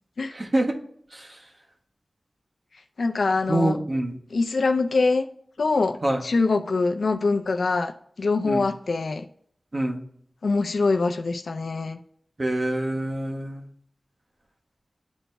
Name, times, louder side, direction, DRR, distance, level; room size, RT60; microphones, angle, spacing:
voice 1, 0.3-0.6 1.1-1.3 3.5-4.2 6.0-6.2 8.4-8.6 9.7-10.0 12.4-13.6, right 1 dB, 40° right, 1.2 m, -25 dB
voice 2, 3.0-3.8 4.3-5.3 5.6-7.9 8.2-9.3 10.4-12.0, left 3 dB, 80° left, 0.5 m, -24 dB
10.5 x 4.0 x 2.2 m
wide cardioid pair, 75°, 0 cm